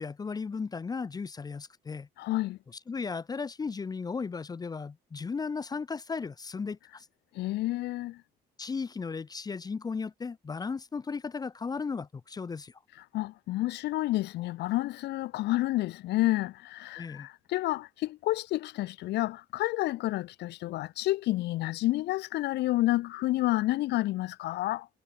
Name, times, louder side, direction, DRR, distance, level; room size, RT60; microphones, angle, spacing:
voice 1, 0.0-2.1 2.9-7.1 8.6-12.8 17.0-17.3, left 5 dB, 20° left, 1.0 m, -35 dB
voice 2, 2.2-2.6 7.3-8.2 13.1-24.9, left 17 dB, 80° left, 1.7 m, -30 dB
cardioid pair, 135°, 17 cm